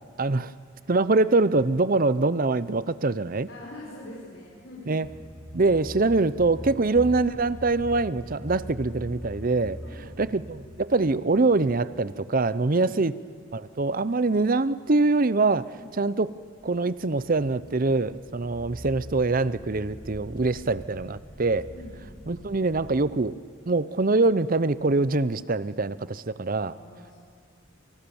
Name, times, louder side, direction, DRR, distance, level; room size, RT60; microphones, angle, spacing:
voice 1, 0.2-0.5 0.9-3.5 4.9-5.1 5.5-9.8 10.2-13.1 13.5-16.3 16.6-21.7 22.3-23.3 23.7-26.7, right 3 dB, 45° right, 16 dB, 0.7 m, -24 dB
voice 2, 3.5-5.0 6.8-7.0 9.8-10.1 12.8-13.2 15.7-16.2 21.7-22.4 26.7-27.1, left 1 dB, 65° left, -4 dB, 5.7 m, -45 dB
sound 1, 5.0-12.8 16.5-23.1, equal, 5° left, 2.2 m, -42 dB
28.0 x 28.0 x 7.2 m, 2.1 s
head